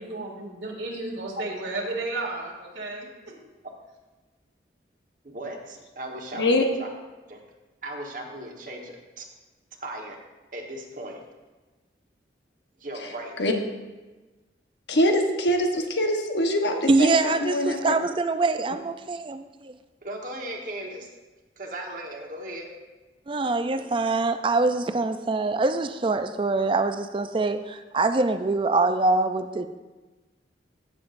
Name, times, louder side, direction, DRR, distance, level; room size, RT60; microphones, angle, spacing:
voice 1, 0.0-3.3, right 2 dB, 85° right, -3 dB, 2.3 m, -33 dB
voice 2, 5.2-6.9 7.3-7.4 7.8-9.3 9.8-10.2 10.5-11.2 12.8-13.3 20.0-21.1 21.6-22.7, right 1 dB, 45° right, 1 dB, 1.3 m, -37 dB
voice 3, 14.9-17.9, left 1 dB, 70° left, 4 dB, 1.1 m, -23 dB
voice 4, 16.9-19.8 23.3-29.7, right 3 dB, 30° right, 10 dB, 0.3 m, -24 dB
15.5 x 7.1 x 2.6 m, 1.2 s
head